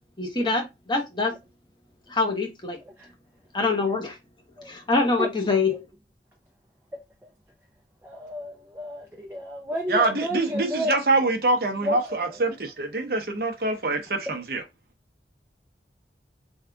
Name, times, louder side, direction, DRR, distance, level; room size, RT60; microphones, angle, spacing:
voice 1, 0.2-1.3 2.1-2.8 3.5-4.2 4.7-5.8, left 3 dB, 25° left, 0.9 m, -24 dB
voice 2, 8.0-11.0 11.2-11.3 11.8-12.4 14.3-14.4, equal, 10° right, 0.5 m, -32 dB
voice 3, 9.9-14.6, right 2 dB, 55° right, 0.7 m, -25 dB
3.6 x 2.3 x 3.4 m
head